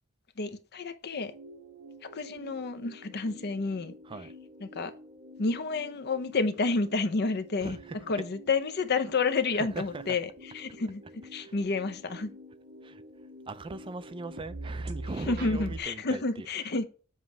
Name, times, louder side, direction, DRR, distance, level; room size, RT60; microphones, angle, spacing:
voice 1, 0.4-1.3 2.1-3.9 4.6-4.9 5.4-7.8 8.1-11.0 11.3-12.3 15.2-16.8, left 4 dB, 50° left, 0.7 m, -30 dB
sound 1, 1.1-15.8, right 1 dB, 50° right, 1.2 m, -46 dB
voice 2, 7.6-8.2 9.5-10.0 11.4-11.5 12.8-13.0 13.5-16.5, right 3 dB, 25° right, 0.4 m, -40 dB
7.3 x 3.1 x 5.9 m
head